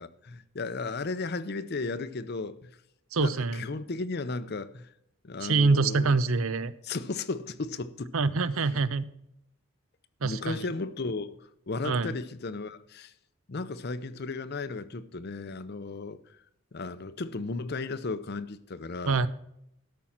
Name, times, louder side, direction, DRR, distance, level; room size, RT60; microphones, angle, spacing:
voice 1, 0.0-2.7 3.2-4.9 5.2-6.2 6.8-8.1 8.6-8.8 10.2-13.1 13.5-16.2 16.7-19.2, left 3 dB, 45° left, 0.6 m, -35 dB
voice 2, 3.1-3.6 5.4-6.7 8.1-9.0 10.2-10.7 11.8-12.2 19.1-19.3, right 4 dB, 70° right, 0.7 m, -25 dB
13.0 x 6.2 x 5.8 m
head